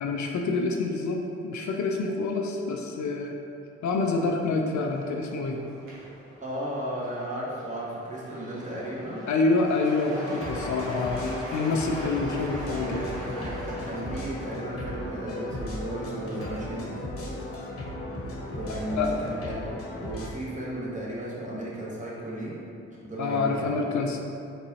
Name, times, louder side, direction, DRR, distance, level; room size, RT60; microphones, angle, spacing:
voice 1, 0.0-3.4 3.8-5.6 9.3-13.0 19.0-19.2 23.2-24.2, left 3 dB, 65° left, 2 dB, 0.5 m, -27 dB
Cheering / Applause / Crowd, 4.2-17.6, equal, 85° right, 1.2 m, -43 dB
voice 2, 6.4-9.3 12.8-17.3 18.6-22.6 23.0-23.8, right 1 dB, 25° right, -7 dB, 1.5 m, -35 dB
sound 1, 10.1-20.3, left 1 dB, 45° left, 0.9 m, -36 dB
3.9 x 3.8 x 2.8 m, 2.6 s
supercardioid pair, 40°, 32 cm